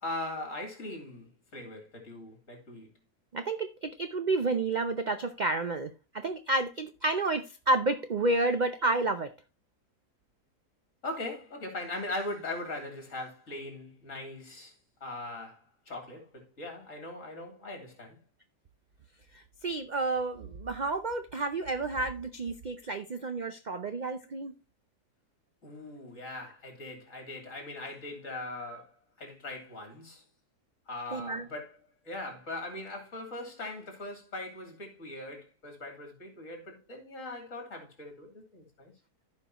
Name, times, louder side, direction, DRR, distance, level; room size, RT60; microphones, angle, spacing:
voice 1, 0.0-2.9 11.0-14.7 15.0-18.2 25.6-30.2 30.9-31.8 32.0-38.9, left 2 dB, 55° left, 3.4 m, -40 dB
voice 2, 3.3-9.3 19.6-24.5 31.1-31.5, right 2 dB, 65° right, 0.4 m, -30 dB
14.5 x 5.4 x 2.9 m
omnidirectional pair, 1.7 m